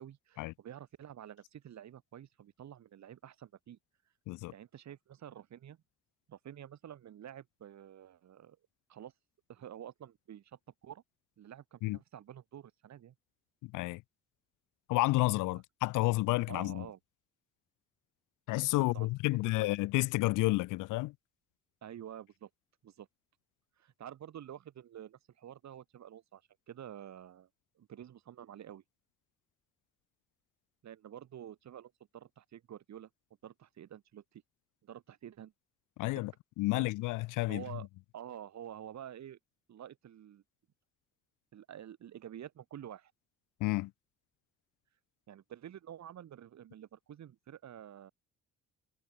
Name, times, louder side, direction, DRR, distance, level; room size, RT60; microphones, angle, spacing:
voice 1, 0.0-3.8 4.5-5.8 6.3-8.6 8.9-9.1 9.5-11.0 11.4-13.1 15.5-15.6 16.5-17.0 18.8-19.1 19.6-19.7 21.8-22.5 22.8-23.1 23.8-26.4 26.7-27.5 27.8-28.8 30.8-33.1 33.4-34.4 34.8-35.5 36.1-36.2 36.7-36.9 37.5-37.9 38.1-39.4 39.7-40.4 41.5-43.1 45.3-48.1, right 10 dB, 65° right, 3.5 m, -49 dB
voice 2, 13.6-14.0 14.9-16.9 18.5-21.1 36.0-36.3 36.6-37.6 43.6-43.9, left 20 dB, 85° left, 0.5 m, -30 dB
cardioid pair, 90°, 30 cm